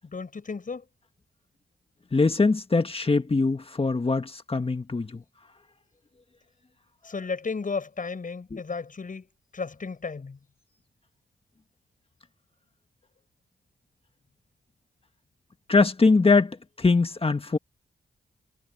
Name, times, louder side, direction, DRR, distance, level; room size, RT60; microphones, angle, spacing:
voice 1, 0.0-0.9 7.0-9.3 9.5-10.4, left 4 dB, 50° left, 7.9 m, -34 dB
voice 2, 2.1-5.2 8.5-8.6 15.7-17.6, left 3 dB, 30° left, 1.7 m, -22 dB
cardioid pair, 65°, 18 cm